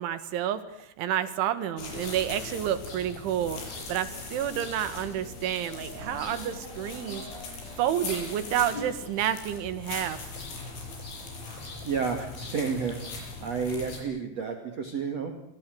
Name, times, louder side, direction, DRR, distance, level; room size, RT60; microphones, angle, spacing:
voice 1, 0.0-3.6 3.9-7.2 7.8-10.2, right 10 dB, 90° right, 12 dB, 4.3 m, -29 dB
sound 1, 0.7-14.1, left 2 dB, 25° left, 1.3 m, -51 dB
sound 2, 1.8-14.0, left 3 dB, 90° left, 10.0 m, -40 dB
voice 2, 11.8-13.1 13.4-15.3, right 5 dB, 40° right, 5 dB, 2.9 m, -31 dB
28.0 x 25.0 x 8.0 m, 0.82 s
omnidirectional pair, 5.3 m